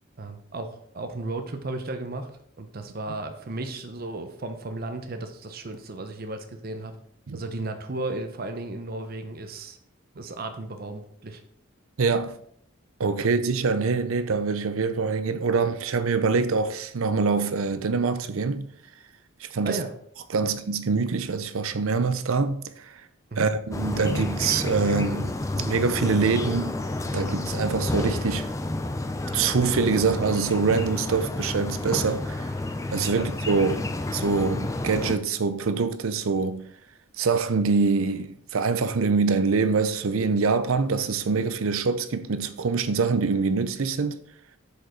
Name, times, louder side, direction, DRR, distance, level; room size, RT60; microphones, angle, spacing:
voice 1, 0.2-2.3 2.6-6.9 7.3-9.8 10.2-11.4 19.6-19.9 23.3-23.5 33.1-33.2, right 2 dB, 45° right, 0.7 m, -34 dB
voice 2, 12.0-12.4 13.0-18.7 19.4-19.8 20.3-23.0 23.4-26.7 27.1-28.5 29.3-32.5 32.9-36.6 37.2-44.2, right 4 dB, 80° right, 0.6 m, -25 dB
sound 1, 23.7-35.2, left 2 dB, 15° left, 0.4 m, -30 dB
6.5 x 5.0 x 4.5 m
head